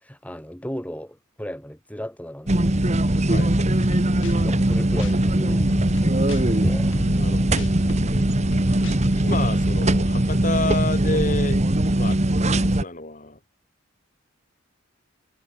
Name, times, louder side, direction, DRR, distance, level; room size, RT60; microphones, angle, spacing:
voice 1, 0.0-3.0 4.4-7.0, equal, 5° left, 3.8 m, -36 dB
sound 1, 2.5-12.8, right 1 dB, 35° right, 1.4 m, -21 dB
voice 2, 3.3-3.7 7.1-7.7 8.1-8.2 9.1-11.6 11.9-13.4, left 2 dB, 40° left, 4.2 m, -30 dB
sound 2, 3.8-9.2, left 1 dB, 60° left, 1.9 m, -36 dB
head